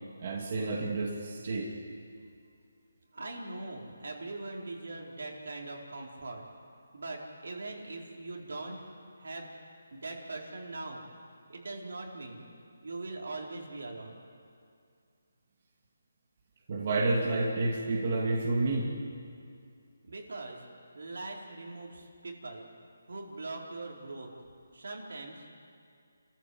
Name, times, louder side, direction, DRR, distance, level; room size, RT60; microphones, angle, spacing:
voice 1, 0.2-1.7 16.7-18.9, right 2 dB, 40° right, -2 dB, 2.6 m, -29 dB
voice 2, 3.1-6.4 6.9-8.9 9.2-9.5 9.9-11.0 11.5-12.4 12.8-14.2 20.0-20.6 20.9-22.7 23.1-24.3 24.7-25.5, right 2 dB, 75° right, -1 dB, 4.3 m, -41 dB
29.5 x 14.5 x 7.9 m, 2.3 s
hypercardioid pair, 170°, 0 cm